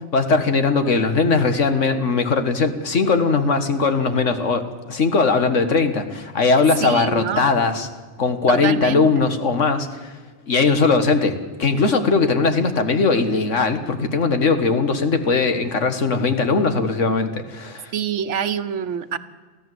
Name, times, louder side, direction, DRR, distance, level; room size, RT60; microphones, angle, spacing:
voice 1, 0.1-7.9 8.2-10.1 10.5-17.9, left 4 dB, 80° left, 8 dB, 1.9 m, -19 dB
voice 2, 6.8-7.5 8.5-9.3 17.9-19.2, right 8 dB, 70° right, 11 dB, 1.2 m, -26 dB
23.0 x 15.0 x 7.9 m, 1.5 s
omnidirectional pair, 1.3 m